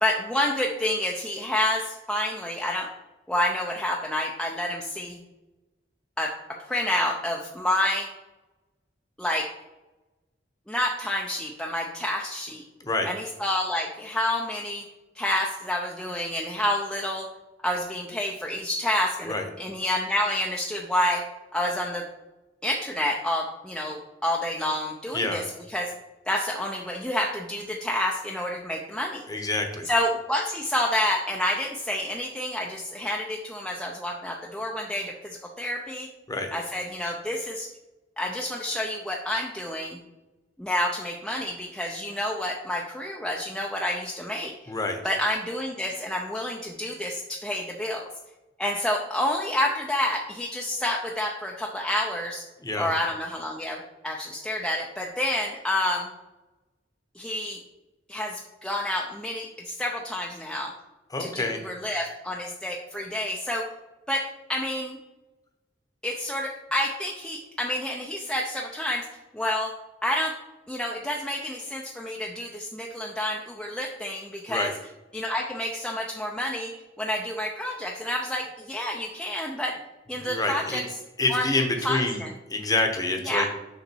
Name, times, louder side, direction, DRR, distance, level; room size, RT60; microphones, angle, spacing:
voice 1, 0.0-2.9 3.3-5.2 6.2-8.1 9.2-9.5 10.7-12.6 13.1-14.8 15.2-17.3 17.6-21.2 21.5-22.1 22.6-25.4 25.7-25.9 26.3-29.2 29.8-36.1 36.5-37.7 38.2-40.0 40.6-44.5 45.0-48.0 48.6-52.5 52.7-56.1 57.2-57.6 58.1-60.7 61.2-63.7 64.1-65.0 66.0-69.1 69.3-69.7 70.0-70.4 70.7-74.7 75.1-76.7 77.0-79.8 80.1-80.8 81.3-81.5 81.8-82.3 83.2-83.5, left 1 dB, 5° left, -2 dB, 0.6 m, -29 dB
voice 2, 29.3-29.9 36.3-36.5 44.7-45.0 52.6-52.9 61.1-61.6 74.5-74.7 80.2-80.8 81.2-82.2 82.5-83.5, left 2 dB, 20° left, 4 dB, 1.0 m, -27 dB
6.7 x 5.2 x 4.5 m, 1.1 s
head